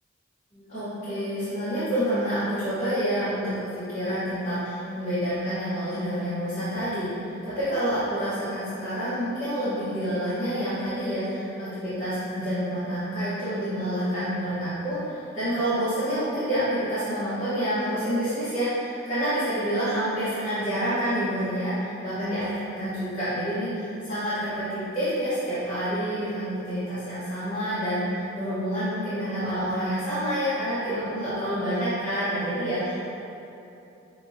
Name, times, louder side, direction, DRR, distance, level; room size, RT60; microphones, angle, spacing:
voice 1, 0.5-32.9, equal, 35° left, -15 dB, 1.1 m, -28 dB
5.5 x 3.0 x 2.6 m, 2.8 s
head